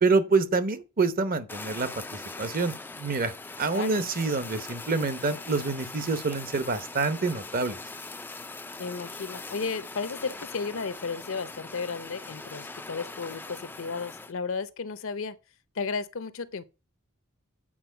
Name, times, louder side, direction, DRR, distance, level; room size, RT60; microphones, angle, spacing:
voice 1, 0.0-3.3 3.6-7.8, right 4 dB, 40° right, 0.8 m, -27 dB
Fire, 1.5-14.3, left 3 dB, 10° left, 0.3 m, -41 dB
voice 2, 3.7-4.1 8.8-15.4 15.8-16.6, left 4 dB, 60° left, 0.6 m, -34 dB
8.7 x 4.5 x 5.6 m
head